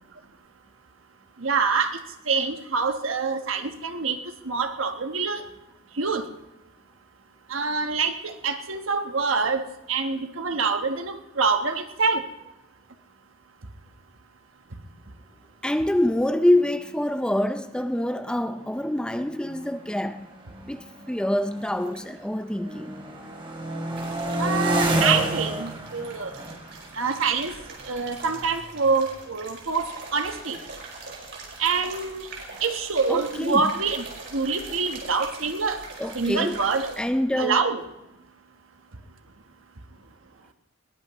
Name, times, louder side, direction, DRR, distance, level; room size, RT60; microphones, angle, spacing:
voice 1, 1.4-2.0 2.3-4.2 4.4-5.4 6.0-6.2 7.5-9.6 9.9-12.2 24.4-26.3 27.0-27.5 27.9-29.9 30.1-30.6 31.6-32.3 32.6-34.1 34.3-35.8 36.1-36.9 37.4-37.8, right 4 dB, 90° right, 1.2 m, -25 dB
voice 2, 15.6-20.3 20.7-23.0 33.1-33.7 36.0-36.6 37.0-37.6, left 1 dB, 5° left, 0.5 m, -26 dB
sound 1, 16.8-16.9 17.1-17.5 18.2-22.2 22.5-29.2, right 1 dB, 25° right, 2.7 m, -31 dB
sound 2, 21.6-22.2 23.9-25.4 25.7-37.0, right 3 dB, 60° right, 4.9 m, -42 dB
21.0 x 19.0 x 3.1 m
head